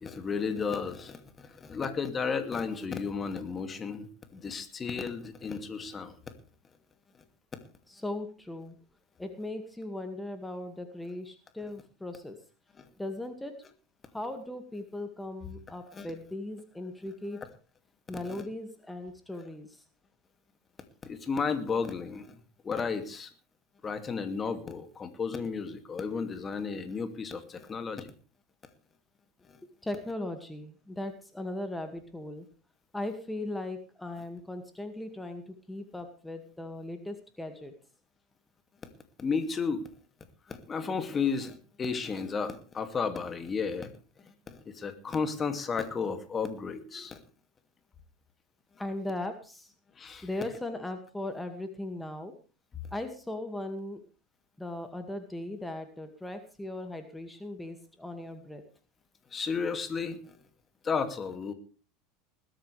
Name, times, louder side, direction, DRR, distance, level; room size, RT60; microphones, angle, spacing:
voice 1, 0.0-6.3 12.8-12.9 15.9-16.1 18.2-18.4 21.0-23.3 23.8-28.1 29.5-29.6 38.8-38.9 39.2-39.9 40.5-43.9 44.2-47.2 50.0-50.3 59.3-60.4 60.8-61.5, left 5 dB, 25° left, 8 dB, 2.4 m, -33 dB
voice 2, 7.9-8.8 9.2-12.4 13.0-13.5 14.1-17.4 18.1-19.8 29.8-32.4 32.9-37.7 47.0-47.1 48.8-49.7 50.2-52.3 52.9-54.0 54.6-58.6, left 1 dB, 5° left, 6 dB, 2.2 m, -38 dB
20.5 x 13.0 x 3.4 m, 0.36 s
hypercardioid pair, 80°, 0 cm